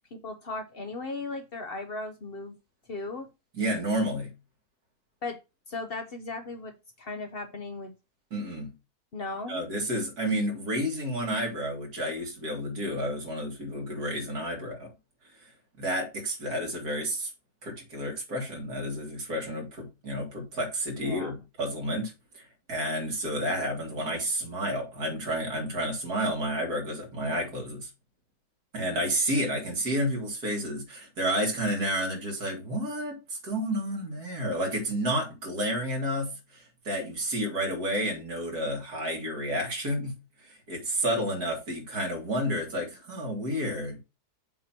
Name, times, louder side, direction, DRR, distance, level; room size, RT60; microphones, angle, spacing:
voice 1, 0.1-2.6 2.9-3.3 5.2-5.4 5.7-7.9 9.1-9.6 21.0-21.4, left 3 dB, 50° left, 0.8 m, -37 dB
voice 2, 3.5-4.3 8.3-8.7 9.5-14.9 15.8-17.3 17.6-22.4 22.7-27.9 28.7-40.2 40.5-44.0, equal, 85° right, 2.8 m, -30 dB
7.5 x 2.9 x 5.8 m
omnidirectional pair, 1.6 m